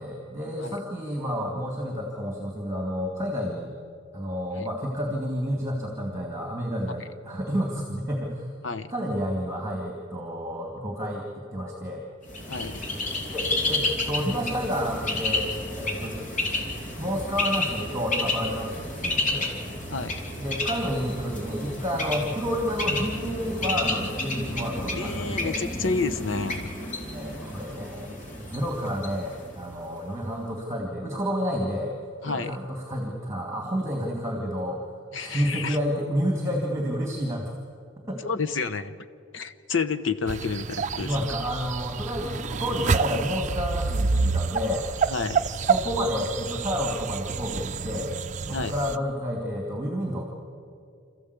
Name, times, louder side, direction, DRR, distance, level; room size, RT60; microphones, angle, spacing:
voice 1, 0.0-3.7 4.1-8.5 8.9-11.3 11.5-12.0 13.3-16.2 17.0-19.5 20.4-25.5 27.1-31.9 32.3-34.8 35.2-37.5 38.1-38.2 41.0-44.9 45.6-48.1 48.4-50.3, equal, 15° right, 1 dB, 2.5 m, -30 dB
Bird, 12.3-30.0, left 2 dB, 40° left, 3.0 m, -31 dB
voice 2, 12.5-12.8 19.9-20.1 24.9-26.7 32.2-32.6 35.1-35.8 38.2-38.9 39.3-41.2 45.1-45.4 48.5-48.7, left 4 dB, 75° left, 11 dB, 1.0 m, -30 dB
sound 1, 40.3-49.0, right 5 dB, 40° right, 0.5 m, -28 dB
27.5 x 14.5 x 8.3 m, 2.4 s
head